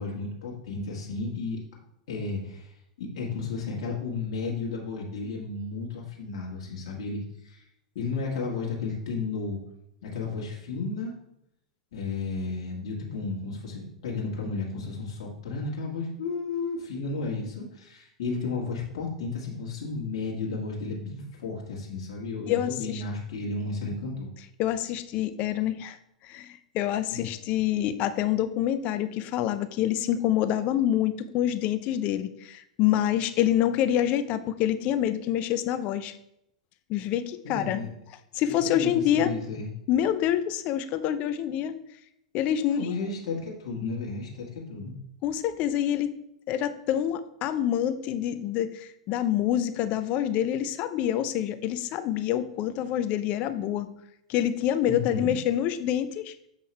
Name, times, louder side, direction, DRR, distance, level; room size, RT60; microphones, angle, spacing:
voice 1, 0.0-1.6 2.1-7.6 8.0-9.6 10.0-11.1 11.9-24.3 27.1-27.2 37.4-37.9 38.6-39.7 42.7-45.0 54.8-55.3, left 4 dB, 60° left, -2 dB, 1.7 m, -33 dB
voice 2, 22.5-23.0 24.6-26.0 26.2-36.1 36.9-37.8 38.3-39.3 39.9-41.8 42.3-42.8 45.2-46.1 46.5-53.9 54.3-56.3, left 11 dB, 45° left, 12 dB, 0.6 m, -26 dB
7.3 x 5.3 x 3.2 m, 0.78 s
figure-of-eight pair, 95°, 3 cm